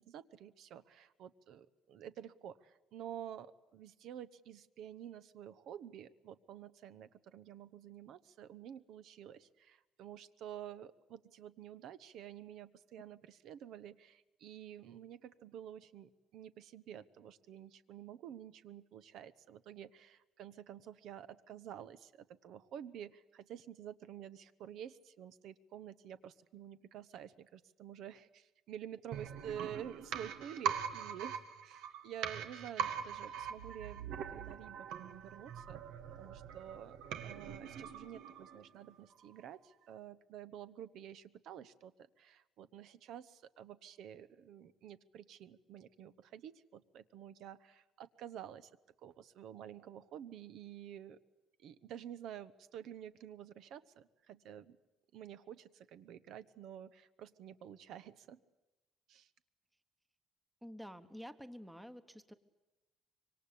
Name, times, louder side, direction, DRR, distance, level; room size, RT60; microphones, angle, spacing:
voice 1, 0.0-35.8 36.2-37.0 37.2-48.7 49.0-51.2 51.6-54.8 55.1-58.4 59.1-59.3, right 10 dB, 60° right, 14 dB, 1.1 m, -50 dB
sound 1, 29.1-38.8 39.1-39.2, right 8 dB, 90° right, 2.5 m, -42 dB
voice 2, 60.6-62.3, equal, 5° right, 11 dB, 1.1 m, -49 dB
26.0 x 24.5 x 8.5 m, 1.0 s
cardioid pair, 180°, 0 cm